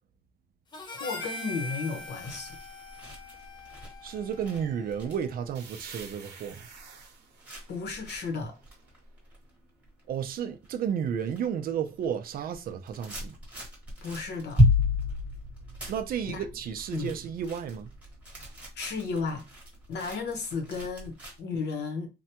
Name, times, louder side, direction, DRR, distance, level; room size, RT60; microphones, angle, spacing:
Harmonica, 0.7-5.2, left 2 dB, 25° left, 0.5 m, -42 dB
voice 1, 0.9-2.6 7.7-8.6 14.0-14.6 16.3-16.4 16.9-17.1 18.8-19.4 19.9-22.1, left 4 dB, 70° left, 0.8 m, -34 dB
sound 1, 2.0-10.2 10.6-11.4 11.7-21.4, left 2 dB, 10° right, 1.0 m, -32 dB
voice 2, 4.0-6.7 10.1-13.4 15.9-17.9, right 8 dB, 55° right, 0.4 m, -32 dB
sound 2, 5.5-9.2, right 5 dB, 70° right, 0.8 m, -49 dB
3.3 x 2.2 x 2.8 m
cardioid pair, 170°, 18 cm